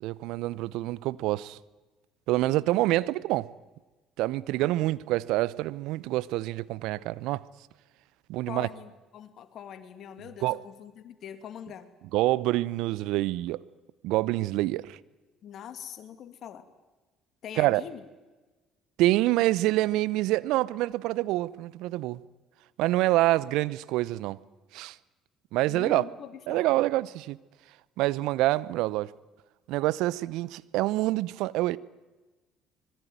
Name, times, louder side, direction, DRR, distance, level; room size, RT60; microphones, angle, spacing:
voice 1, 0.0-1.6 2.3-3.5 4.2-7.4 8.3-8.7 10.4-10.6 12.1-13.6 14.0-15.0 17.6-17.8 19.0-22.2 22.8-24.4 24.7-25.0 25.5-26.0 26.5-27.4 28.0-29.1 29.7-31.8, right 17 dB, 65° right, 0.8 m, -26 dB
voice 2, 4.6-4.9 8.5-11.9 15.4-16.7 17.4-18.0 25.7-26.7, left 9 dB, 50° left, 2.5 m, -43 dB
25.0 x 21.0 x 9.4 m
figure-of-eight pair, 55°, 0 cm